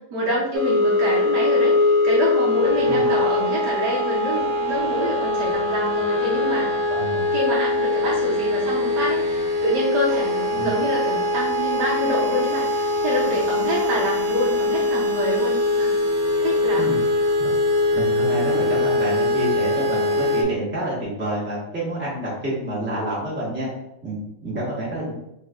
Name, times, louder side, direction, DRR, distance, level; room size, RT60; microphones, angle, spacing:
voice 1, 0.1-6.7 7.3-15.9 16.4-17.0, equal, 65° right, -5 dB, 1.2 m, -26 dB
sound 1, 0.5-20.4, left 2 dB, 90° right, 1.4 m, -22 dB
voice 2, 6.9-7.3 10.5-10.7 16.8-17.0 17.4-17.5 17.9-23.7 24.0-24.2 24.4-25.1, right 1 dB, 5° right, -8 dB, 1.0 m, -28 dB
4.0 x 3.2 x 2.4 m, 0.85 s
omnidirectional pair, 2.1 m